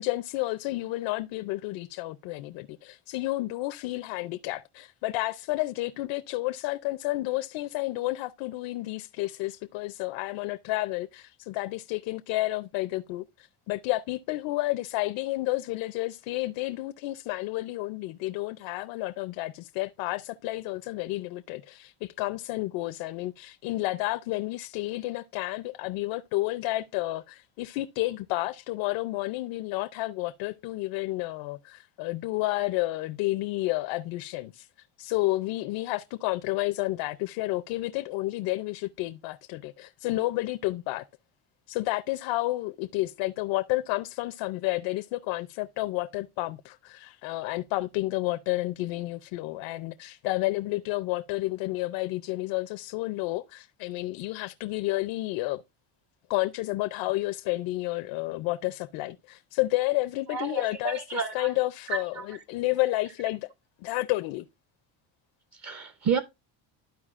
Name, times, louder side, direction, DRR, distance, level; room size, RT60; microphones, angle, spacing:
voice 1, 0.0-34.7 35.0-41.0 41.7-55.6 56.3-63.5 63.8-64.4, left 19 dB, 80° left, 0.6 m, -31 dB
voice 2, 60.3-61.5 61.9-62.2 65.6-66.2, right 5 dB, 40° right, 0.6 m, -30 dB
13.0 x 4.7 x 2.4 m
cardioid pair, 140°, 44 cm